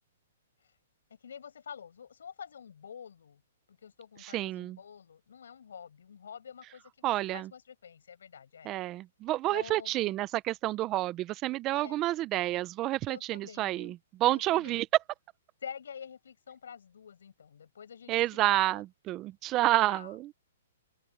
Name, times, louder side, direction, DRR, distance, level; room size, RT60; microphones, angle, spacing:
voice 1, 1.2-3.4 3.7-8.7 9.5-10.2 11.7-12.0 13.1-14.0 14.3-14.8 15.6-18.2 18.5-18.8 19.9-20.2, left 7 dB, 80° left, 7.1 m, -47 dB
voice 2, 4.2-4.8 7.0-7.5 8.7-13.9 14.2-14.9 18.1-20.2, right 16 dB, 20° right, 0.5 m, -29 dB
open air
hypercardioid pair, 160°, 0 cm